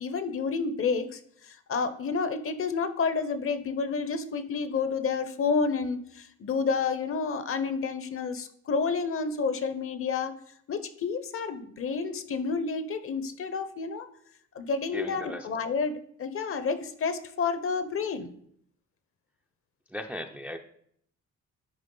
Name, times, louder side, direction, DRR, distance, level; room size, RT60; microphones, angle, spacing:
voice 1, 0.0-10.3 10.7-14.1 14.5-18.3, left 5 dB, 45° left, 12 dB, 0.7 m, -30 dB
voice 2, 14.9-15.5 19.9-20.6, equal, 5° right, 5 dB, 0.4 m, -36 dB
10.5 x 3.6 x 3.8 m, 0.66 s
cardioid pair, 90°, 30 cm